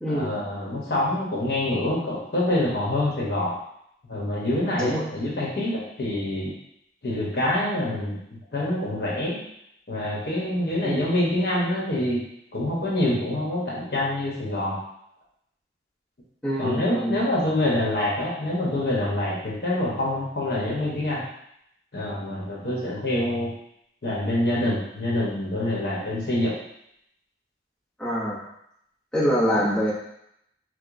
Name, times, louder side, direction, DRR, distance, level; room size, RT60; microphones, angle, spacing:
voice 1, 0.1-3.6 4.1-6.5 7.0-8.2 8.5-9.4 9.9-12.2 12.5-14.8 16.6-21.2 21.9-23.5 24.0-26.6, left 1 dB, 60° left, -4 dB, 0.9 m, -26 dB
voice 2, 16.4-17.2 28.0-28.4 29.1-29.9, equal, 5° left, -9 dB, 0.7 m, -24 dB
4.7 x 2.1 x 2.5 m, 0.76 s
head